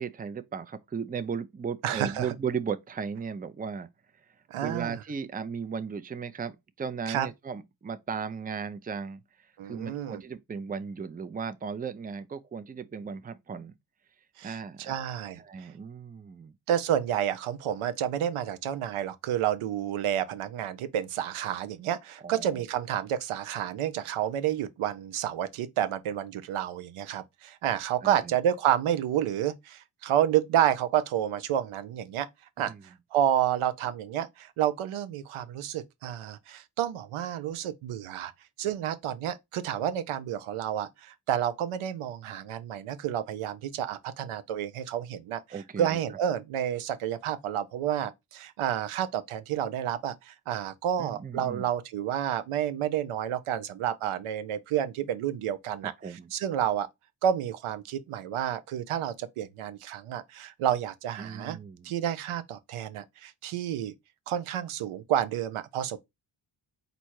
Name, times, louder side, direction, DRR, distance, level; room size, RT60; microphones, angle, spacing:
voice 1, 0.0-3.9 4.2-4.3 4.6-13.8 14.4-15.0 15.4-16.5 22.2-22.6 28.0-28.3 32.6-32.8 45.5-46.0 51.0-51.6 56.0-56.3 61.2-61.9, right 6 dB, 20° right, 0.5 m, -36 dB
voice 2, 1.8-2.3 4.5-5.0 7.1-7.3 9.6-10.2 14.4-15.4 16.7-32.3 32.6-38.3 38.6-45.4 45.8-55.9 56.3-56.9 57.2-61.6 61.8-63.9 64.3-66.0, right 10 dB, 80° right, 0.7 m, -30 dB
4.3 x 2.7 x 4.6 m
supercardioid pair, 55°, 49 cm